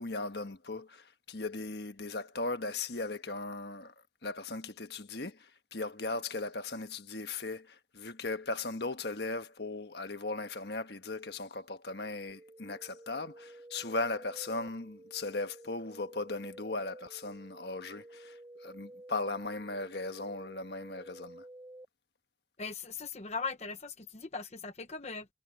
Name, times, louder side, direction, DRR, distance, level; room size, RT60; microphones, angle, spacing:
voice 1, 0.0-3.9 4.2-21.4, left 3 dB, 60° left, 1.4 m, -38 dB
sound 1, 12.3-21.9, right 1 dB, 15° right, 5.0 m, -52 dB
voice 2, 22.6-25.3, left 4 dB, 35° left, 1.0 m, -39 dB
head